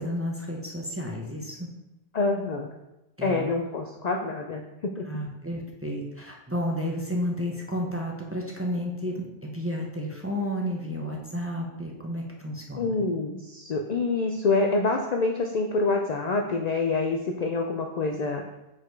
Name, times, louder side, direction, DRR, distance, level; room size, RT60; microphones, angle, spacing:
voice 1, 0.0-1.7 3.2-3.4 5.0-13.0, equal, 15° right, -1 dB, 0.6 m, -32 dB
voice 2, 2.1-2.7 3.2-5.1 12.8-18.4, left 3 dB, 55° left, 2 dB, 0.5 m, -26 dB
5.1 x 4.1 x 4.6 m, 0.95 s
omnidirectional pair, 1.1 m